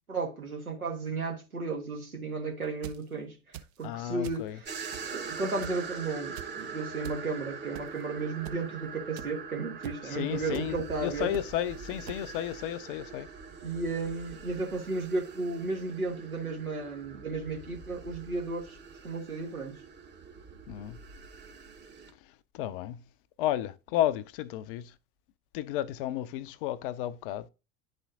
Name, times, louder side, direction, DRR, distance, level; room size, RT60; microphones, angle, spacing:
voice 1, 0.1-4.7 5.0-11.3 13.6-18.8 19.0-19.8, right 3 dB, 85° right, 1.5 m, -34 dB
sound 1, 2.6-3.0 3.5-3.9 4.2-4.5 4.9-5.3 5.6-5.9 6.4-6.5 7.0-7.2 7.7-8.0 8.4-8.6 9.2-9.3 9.8-10.0 10.5-10.6 11.3-11.5 12.1-12.2, right 11 dB, 50° right, 0.7 m, -42 dB
voice 2, 3.8-4.6 10.0-13.3 20.7-21.0 22.5-23.0 23.4-24.9 25.5-27.5, left 12 dB, 40° left, 0.4 m, -32 dB
sound 2, 4.6-22.1, right 5 dB, 25° right, 1.1 m, -43 dB
10.5 x 4.2 x 2.5 m
figure-of-eight pair, 75°, 42 cm